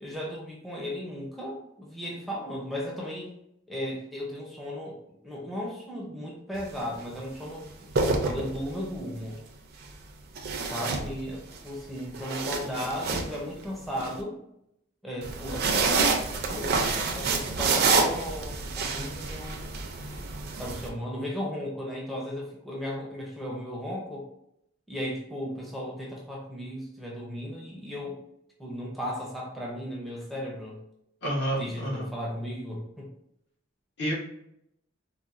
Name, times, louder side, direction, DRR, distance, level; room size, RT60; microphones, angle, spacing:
voice 1, 0.0-3.3 3.7-5.0 5.2-9.4 10.6-14.4 15.0-16.1 16.5-16.8 17.1-19.6 20.6-24.3 24.9-28.2 28.6-30.8 31.6-33.1, equal, ahead, -4 dB, 0.5 m, -35 dB
sound 1, 6.5-6.8 7.7-8.9 10.4-11.6 12.0-14.1 15.2-20.9, right 4 dB, 55° right, 0.4 m, -28 dB
voice 2, 31.2-32.1 34.0-34.1, equal, 60° left, -4 dB, 1.0 m, -29 dB
4.0 x 2.1 x 2.4 m, 0.78 s
head